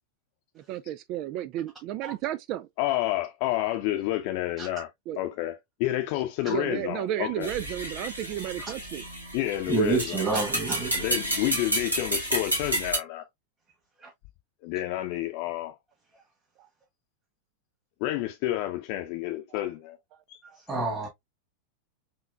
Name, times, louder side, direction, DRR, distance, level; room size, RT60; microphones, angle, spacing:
voice 1, 0.6-2.7 5.1-5.2 6.4-9.1 16.6-16.7 20.5-20.6, right 12 dB, 40° right, 0.3 m, -33 dB
voice 2, 2.8-4.9 5.2-7.5 9.3-10.3 10.9-13.3 14.6-15.7 18.0-20.0 20.3-20.4, left 15 dB, 45° left, 0.7 m, -29 dB
sound 1, 7.4-13.0, right 1 dB, 80° right, 1.7 m, -31 dB
voice 3, 9.7-10.9 14.0-14.1 20.7-21.1, right 4 dB, 15° right, 1.7 m, -27 dB
4.7 x 3.1 x 2.2 m
figure-of-eight pair, 90°, 0 cm